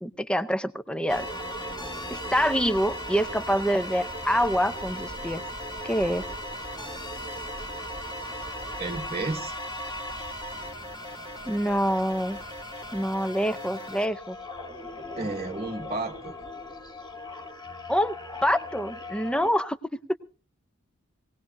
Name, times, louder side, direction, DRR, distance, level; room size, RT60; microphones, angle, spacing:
voice 1, 0.0-1.3 2.1-5.4 5.8-6.2 11.5-12.4 12.9-14.4 17.9-19.8, equal, 5° left, 13 dB, 0.6 m, -26 dB
sound 1, 1.1-19.5, equal, 20° left, 2.1 m, -37 dB
voice 2, 8.8-9.6 15.2-16.3, right 3 dB, 30° right, 0 dB, 1.1 m, -32 dB
21.0 x 18.0 x 2.7 m, 0.35 s
head